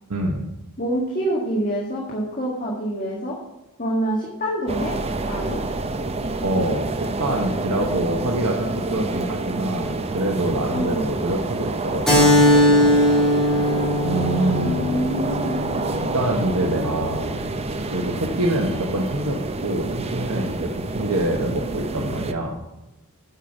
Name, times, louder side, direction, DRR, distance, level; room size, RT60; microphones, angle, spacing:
voice 1, 0.1-0.4 5.3-5.5 6.4-13.8 14.0-14.7 16.1-17.4 17.8-22.6, right 1 dB, 85° right, 0 dB, 1.1 m, -26 dB
voice 2, 0.8-3.4 3.8-5.0 5.3-5.6 10.7-11.1 14.6-15.6, right 1 dB, 35° left, -4 dB, 1.7 m, -26 dB
sound 1, 4.7-22.3, right 2 dB, 25° right, 0.6 m, -28 dB
Keyboard (musical), 12.1-17.2, left 1 dB, ahead, 3.0 m, -20 dB
8.1 x 5.9 x 7.0 m, 0.96 s
head